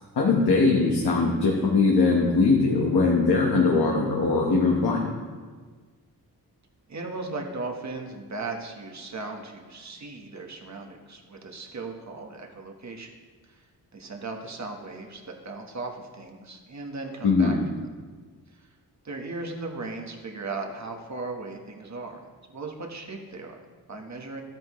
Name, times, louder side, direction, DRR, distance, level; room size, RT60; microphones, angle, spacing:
voice 1, 0.2-5.1 17.2-17.6, left 3 dB, 85° left, -2 dB, 1.3 m, -21 dB
voice 2, 6.9-13.1 13.4-13.6 13.9-17.6 19.0-24.4, right 3 dB, 45° right, 2 dB, 1.4 m, -37 dB
13.0 x 9.0 x 3.2 m, 1.5 s
wide cardioid pair, 90°, 38 cm